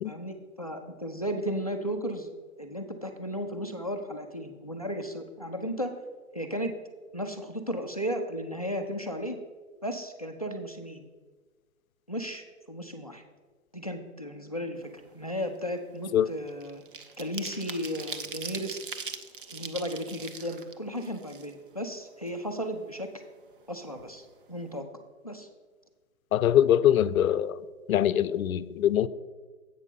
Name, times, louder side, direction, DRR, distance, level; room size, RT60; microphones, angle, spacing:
voice 1, 0.0-2.3 2.6-5.9 6.3-6.7 7.1-9.4 9.8-11.0 12.1-13.2 13.7-16.8 17.2-18.8 19.5-23.1 23.7-24.9 25.2-25.5, equal, 30° left, 0.4 m, -35 dB
sound 1, 14.9-15.1 15.5-21.9 22.3-22.4 22.7-23.7 24.0-24.1 24.4-24.7, right 5 dB, 40° right, 0.6 m, -41 dB
voice 2, 26.3-27.6 27.9-29.1, left 10 dB, 85° left, 0.6 m, -23 dB
8.1 x 5.4 x 6.7 m
hypercardioid pair, 175°, 41 cm